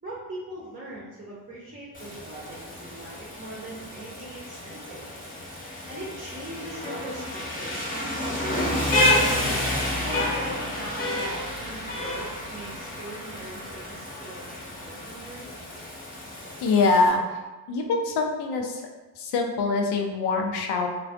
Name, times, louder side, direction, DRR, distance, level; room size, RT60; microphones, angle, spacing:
voice 1, 0.0-5.1 5.8-9.4 10.0-15.5, right 1 dB, 25° right, -6 dB, 0.7 m, -40 dB
Rain, 1.9-17.1, left 1 dB, 20° left, 0.8 m, -30 dB
voice 2, 16.6-17.4 17.7-18.8 19.2-20.9, left 3 dB, 75° left, 2 dB, 0.5 m, -24 dB
2.4 x 2.2 x 2.4 m, 1.2 s
supercardioid pair, 60°, 39 cm